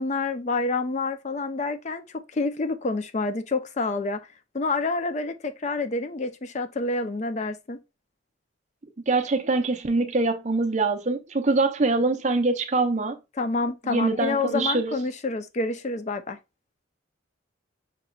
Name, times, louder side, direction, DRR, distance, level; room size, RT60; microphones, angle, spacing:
voice 1, 0.0-4.3 4.5-7.8 13.4-16.4, left 3 dB, 35° left, 0.4 m, -28 dB
voice 2, 9.1-13.2 13.8-14.9, right 3 dB, 35° right, 0.5 m, -24 dB
6.3 x 2.9 x 2.3 m
head